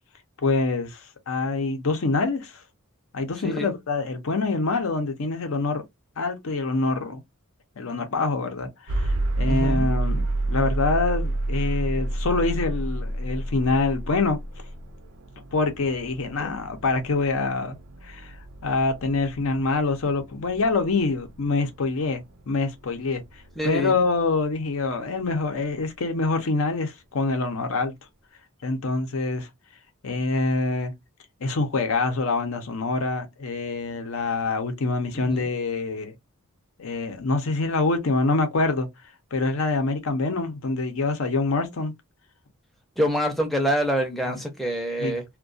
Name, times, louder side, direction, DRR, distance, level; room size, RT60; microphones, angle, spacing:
voice 1, 0.4-2.6 3.1-5.8 6.2-7.2 7.8-14.4 15.5-17.8 18.0-18.3 18.6-23.2 23.6-27.9 28.6-29.5 30.0-30.9 31.4-36.1 36.8-38.9 39.3-41.9 45.0-45.1, left 3 dB, 75° left, 0.6 m, -25 dB
voice 2, 3.4-3.7 9.4-9.9 16.4-16.5 23.6-24.0 35.2-35.5 43.0-45.2, equal, ahead, 0.5 m, -26 dB
sound 1, 8.9-24.8, right 2 dB, 75° right, 0.5 m, -30 dB
2.3 x 2.2 x 2.4 m
head